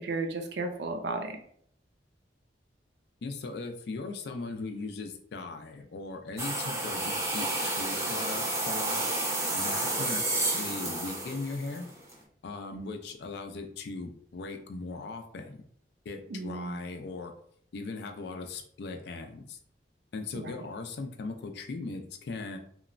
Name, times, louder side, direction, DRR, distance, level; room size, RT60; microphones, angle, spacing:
voice 1, 0.0-1.4 16.3-16.8 20.3-20.6, right 3 dB, 70° right, 4 dB, 0.5 m, -34 dB
voice 2, 3.2-9.1 9.5-11.9 12.4-15.6 16.1-17.3 17.7-19.6 20.1-22.6, left 3 dB, 65° left, 4 dB, 0.4 m, -39 dB
sound 1, 6.4-12.1, right 2 dB, 15° right, 0.5 m, -31 dB
2.9 x 2.0 x 2.4 m, 0.63 s
head